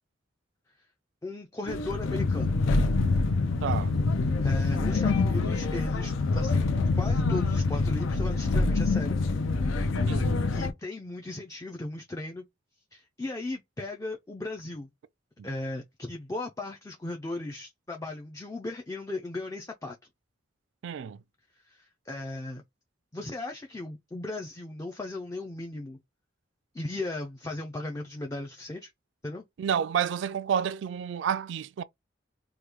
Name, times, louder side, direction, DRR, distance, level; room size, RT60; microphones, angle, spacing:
voice 1, 1.2-2.6 4.4-6.7 7.0-9.2 9.6-10.0 10.5-12.5 12.9-14.9 15.4-20.0 21.7-22.6 23.1-26.0 26.7-28.9 29.2-29.4, left 2 dB, 15° left, 0.4 m, -37 dB
sound 1, 1.7-10.7, left 3 dB, 90° left, 0.5 m, -26 dB
voice 2, 3.6-4.0 10.1-10.4 15.4-15.5 20.8-21.2 29.6-31.8, right 8 dB, 70° right, 0.3 m, -30 dB
3.1 x 2.2 x 3.4 m
head